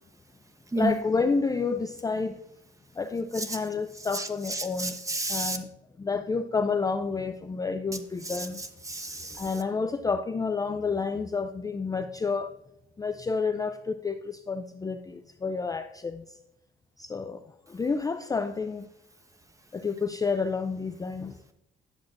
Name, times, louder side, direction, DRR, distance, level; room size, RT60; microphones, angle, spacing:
voice 1, 0.8-2.4 3.0-5.0 5.3-5.7 6.0-8.6 9.3-12.5 13.0-16.4 17.0-18.9 19.7-21.4, left 4 dB, 20° left, 8 dB, 0.4 m, -30 dB
voice 2, 4.1-5.6 8.3-8.5 8.9-9.4, right 2 dB, 15° right, 7 dB, 1.0 m, -31 dB
10.5 x 7.3 x 2.5 m, 0.81 s
cardioid pair, 90°, 20 cm